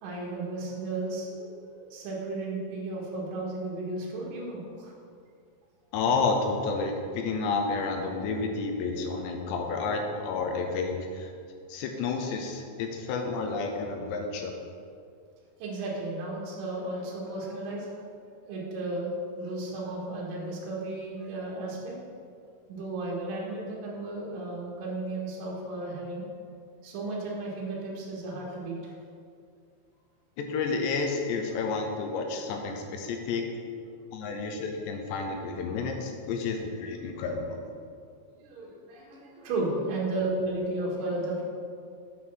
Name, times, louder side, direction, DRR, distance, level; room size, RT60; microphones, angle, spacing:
voice 1, 0.0-4.9 15.6-17.9 18.5-19.1 19.4-21.9 22.7-26.2 26.8-28.9 38.3-41.4, right 2 dB, 60° right, -4 dB, 3.1 m, -34 dB
voice 2, 5.9-11.3 11.7-14.5 30.4-33.4 34.1-37.6, left 4 dB, 80° left, 3 dB, 3.0 m, -30 dB
8.5 x 5.6 x 6.1 m, 2.3 s
omnidirectional pair, 5.0 m